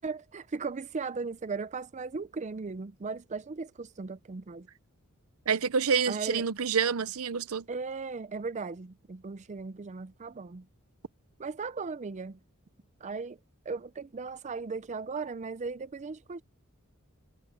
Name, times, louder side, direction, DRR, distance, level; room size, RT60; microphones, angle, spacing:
voice 1, 0.0-4.7 6.1-6.5 7.7-10.7 11.4-12.4 13.0-13.4 13.7-16.4, right 4 dB, 35° right, 0.5 m, -37 dB
voice 2, 5.5-7.6, right 6 dB, 75° right, 0.7 m, -27 dB
head